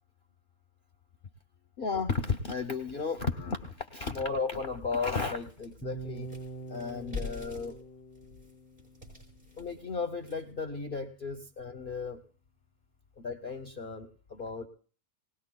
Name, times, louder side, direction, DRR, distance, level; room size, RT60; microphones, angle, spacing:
voice 1, 1.8-6.3 6.7-7.8 9.6-12.2 13.2-14.7, left 4 dB, 50° left, 7 dB, 0.9 m, -34 dB
sound 1, 3.5-3.6 4.1-4.2 4.6-10.6, left 4 dB, 35° right, 5.9 m, -45 dB
sound 2, 5.8-9.9, right 3 dB, 20° left, 0.3 m, -45 dB
20.5 x 18.0 x 2.2 m, 0.42 s
omnidirectional pair, 1.4 m